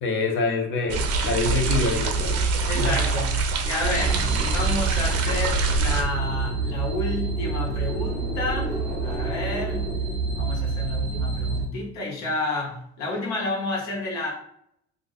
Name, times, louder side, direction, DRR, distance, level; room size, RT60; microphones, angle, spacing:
voice 1, 0.0-2.4 2.8-3.0, left 4 dB, 40° left, 3 dB, 0.7 m, -26 dB
sound 1, 0.9-6.0, right 4 dB, 55° right, 0.5 m, -24 dB
voice 2, 2.7-8.8 9.0-9.9 10.3-14.3, left 2 dB, 60° left, -2 dB, 1.1 m, -30 dB
sound 2, 3.9-11.7, right 3 dB, ahead, 0.7 m, -27 dB
2.5 x 2.2 x 4.0 m, 0.70 s
cardioid pair, 150°, 30 cm